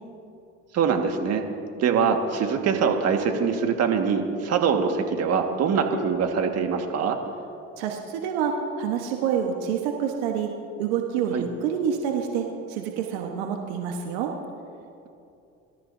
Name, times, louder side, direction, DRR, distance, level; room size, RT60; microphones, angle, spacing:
voice 1, 0.7-1.4 1.8-7.2 11.3-11.5, right 6 dB, 55° right, 4 dB, 1.8 m, -23 dB
voice 2, 7.8-10.5 10.8-14.3, right 7 dB, 85° right, 2 dB, 1.3 m, -27 dB
24.0 x 13.5 x 2.7 m, 2.7 s
supercardioid pair, 80°, 31 cm